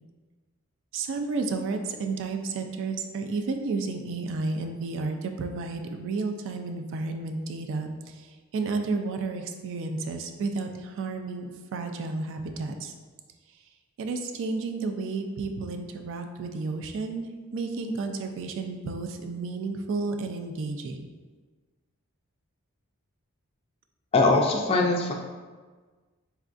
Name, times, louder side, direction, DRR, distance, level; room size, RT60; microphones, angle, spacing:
voice 1, 0.9-12.9 14.0-21.1, right 3 dB, 60° right, 6 dB, 0.3 m, -32 dB
voice 2, 24.1-25.1, left 3 dB, 25° left, 0 dB, 0.3 m, -21 dB
4.3 x 2.3 x 2.5 m, 1.4 s
head